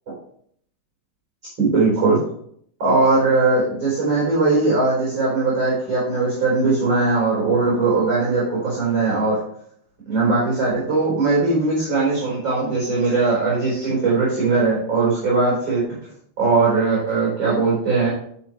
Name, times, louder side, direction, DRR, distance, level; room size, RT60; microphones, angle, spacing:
voice 1, 1.6-2.2 2.8-9.4 10.1-16.0 16.4-18.1, right 3 dB, 25° right, -7 dB, 4.0 m, -19 dB
10.5 x 7.1 x 3.0 m, 0.65 s
omnidirectional pair, 5.6 m